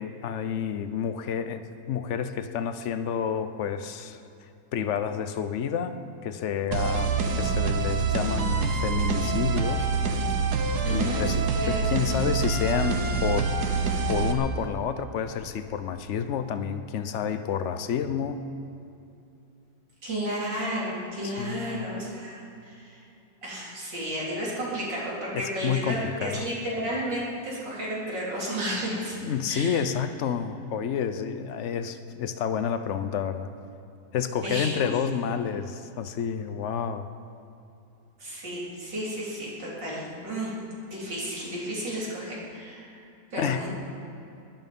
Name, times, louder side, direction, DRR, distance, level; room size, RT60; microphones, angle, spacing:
voice 1, 0.0-4.2 4.7-9.9 10.9-18.4 21.2-21.9 25.3-26.5 29.2-33.5 34.1-37.1 43.3-43.7, left 7 dB, 55° left, 10 dB, 0.9 m, -29 dB
sound 1, 6.7-14.3, right 4 dB, 65° right, 1.6 m, -26 dB
voice 2, 10.8-11.2 11.5-11.8 20.0-23.0 23.4-29.2 29.5-29.8 34.4-34.8 38.2-40.6 40.9-42.9 43.3-43.7, right 1 dB, 80° right, -6 dB, 4.5 m, -32 dB
20.5 x 12.5 x 5.4 m, 2.6 s
omnidirectional pair, 1.9 m